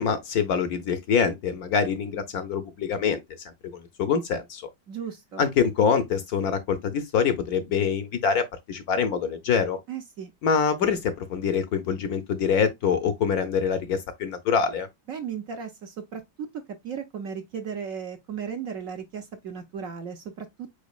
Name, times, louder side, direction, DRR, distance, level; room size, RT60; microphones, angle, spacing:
voice 1, 0.0-3.2 3.7-4.7 5.4-9.8 10.4-14.9, left 6 dB, 65° left, 1.0 m, -25 dB
voice 2, 4.9-5.4 9.9-10.3 15.1-16.5 16.8-20.7, right 7 dB, 60° right, 1.0 m, -35 dB
5.1 x 4.4 x 2.3 m
omnidirectional pair, 2.0 m